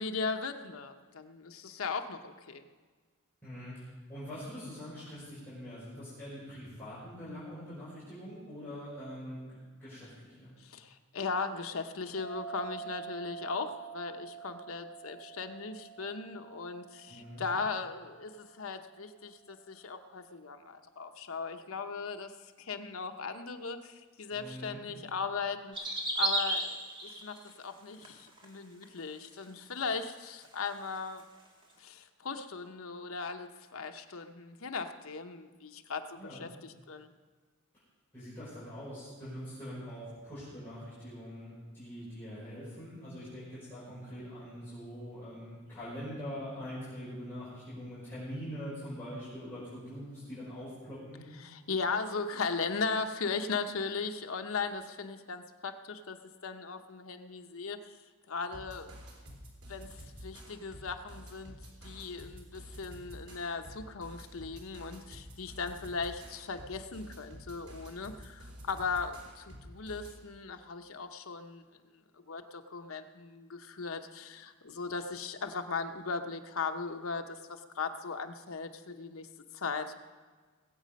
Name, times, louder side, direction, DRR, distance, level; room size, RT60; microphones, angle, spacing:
voice 1, 0.0-2.6 10.6-25.7 26.2-26.8 27.0-31.2 31.8-37.1 51.4-56.2 56.4-58.0 58.3-58.9 59.7-61.5 61.8-71.6 72.1-79.3 79.5-79.9, left 4 dB, 70° left, 6 dB, 0.9 m, -38 dB
voice 2, 3.4-9.4 9.8-10.5 17.1-17.5 24.3-24.8 36.2-36.5 38.1-51.3, equal, 10° left, -12 dB, 5.4 m, -43 dB
sound 1, 12.1-19.2, right 7 dB, 35° left, 4.8 m, -47 dB
sound 2, 25.7-27.5 27.9-28.4 28.8-28.9 29.8-29.9 30.1-30.2 31.2-31.3, right 2 dB, 25° right, 1.9 m, -32 dB
sound 3, 58.5-70.2, equal, 85° right, 3.6 m, -50 dB
20.0 x 8.3 x 5.3 m, 1.5 s
head